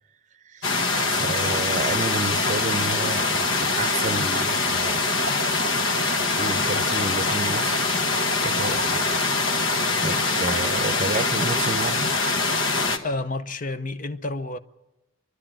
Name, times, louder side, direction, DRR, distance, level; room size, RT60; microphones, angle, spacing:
voice 1, 0.4-5.3 6.4-7.9 8.4-9.2 10.0-12.1, right 3 dB, 35° right, 0.7 m, -31 dB
sound 1, 0.6-13.0, left 3 dB, 65° left, 1.7 m, -23 dB
voice 2, 13.0-14.6, left 2 dB, 40° left, 0.8 m, -30 dB
29.0 x 12.0 x 8.9 m
head